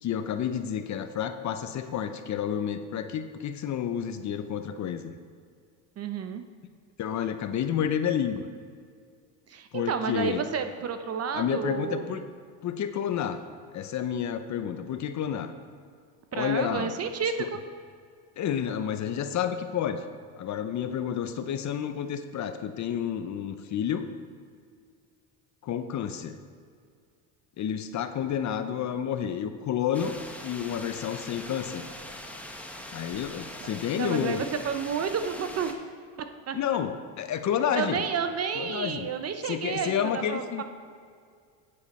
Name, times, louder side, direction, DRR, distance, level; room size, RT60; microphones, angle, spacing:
voice 1, 0.0-5.1 7.0-8.5 9.7-10.4 11.3-12.2 12.6-13.4 13.7-15.5 16.3-16.9 17.4-17.5 18.4-20.0 20.4-24.1 25.6-26.4 27.6-30.1 30.4-31.8 32.9-34.4 36.5-38.0 38.6-39.1 39.4-40.6, left 9 dB, 35° left, 9 dB, 0.6 m, -30 dB
voice 2, 6.0-6.4 9.5-12.2 16.3-17.6 33.6-33.7 34.0-35.7 36.5-36.6 37.8-40.6, right 6 dB, 30° right, 8 dB, 0.6 m, -31 dB
sound 1, 29.9-35.7, left 1 dB, 5° left, 0.9 m, -42 dB
9.4 x 8.6 x 4.2 m, 2.2 s
supercardioid pair, 100°, 48 cm